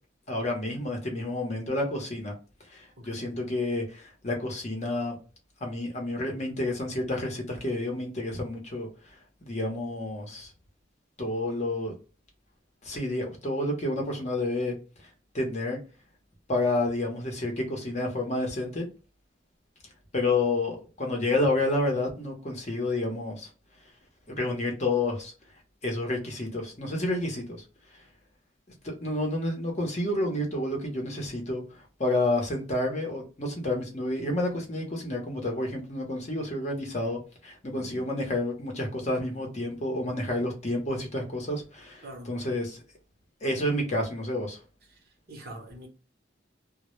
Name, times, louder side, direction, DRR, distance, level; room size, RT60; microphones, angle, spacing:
voice 1, 0.3-2.3 2.7-5.2 5.6-8.9 9.4-10.5 11.2-11.9 12.8-14.7 15.3-15.8 16.5-18.9 20.1-23.5 24.4-25.3 25.8-27.6 28.8-42.8 43.4-44.6, left 2 dB, 40° left, 0.7 m, -29 dB
voice 2, 45.3-45.9, right 1 dB, 55° right, 0.8 m, -43 dB
2.1 x 2.0 x 3.0 m
head